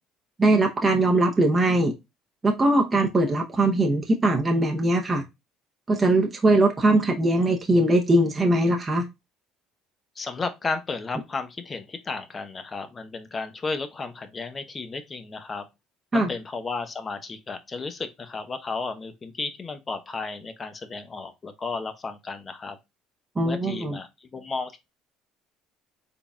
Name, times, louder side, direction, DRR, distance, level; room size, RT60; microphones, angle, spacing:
voice 1, 0.4-1.9 2.4-5.2 5.9-9.1 16.1-16.3 23.4-24.0, right 2 dB, 25° right, 0.7 m, -21 dB
voice 2, 10.2-15.6 16.1-22.8 23.4-24.8, left 4 dB, 30° left, 0.8 m, -33 dB
3.9 x 3.6 x 2.3 m
supercardioid pair, 85°, 0 cm